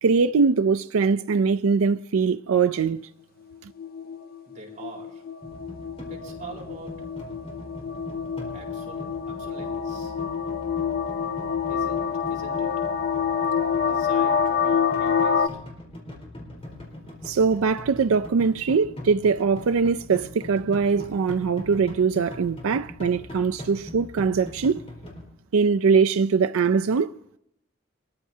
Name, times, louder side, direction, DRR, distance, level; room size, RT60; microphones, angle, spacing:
voice 1, 0.0-3.0 3.6-3.7 17.2-24.9 25.5-27.2, right 5 dB, 90° right, 0.4 m, -22 dB
sound 1, 3.5-15.5, left 7 dB, 45° left, 0.6 m, -27 dB
voice 2, 4.5-5.2 6.1-7.0 8.5-10.1 11.7-12.7 13.8-15.5, right 2 dB, 40° right, 4.4 m, -44 dB
sound 2, 5.4-25.3, left 1 dB, 30° left, 4.2 m, -41 dB
23.5 x 14.0 x 2.8 m
head